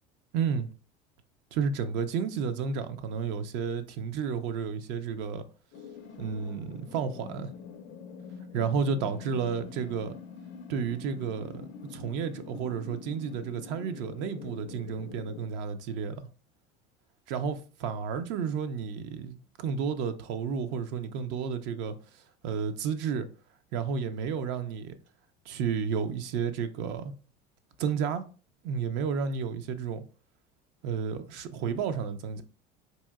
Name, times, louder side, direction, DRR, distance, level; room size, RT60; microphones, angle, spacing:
voice 1, 0.3-0.7 1.5-5.4 6.2-7.5 8.5-10.1 10.7-11.6 11.9-16.2 17.3-22.0 22.4-23.3 23.7-25.0 25.5-27.1 27.8-28.2 28.6-30.0 30.8-32.4, right 6 dB, 65° right, 0.6 m, -31 dB
sound 1, 5.7-15.4, left 6 dB, 60° left, 0.5 m, -45 dB
4.1 x 2.7 x 2.3 m
supercardioid pair, 105°, 21 cm